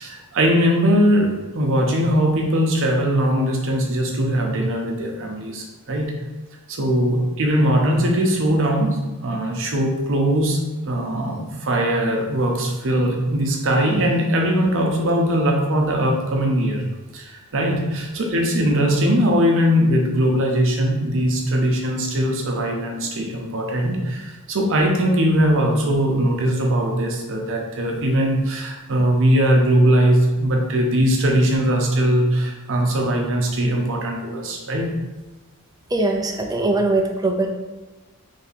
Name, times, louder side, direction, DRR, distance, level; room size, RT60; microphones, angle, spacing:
voice 1, 0.0-6.1 6.7-16.8 17.1-34.9, equal, 65° right, 1 dB, 0.7 m, -20 dB
voice 2, 35.9-37.5, right 2 dB, 15° right, 3 dB, 0.4 m, -21 dB
3.3 x 2.7 x 4.1 m, 1.2 s
head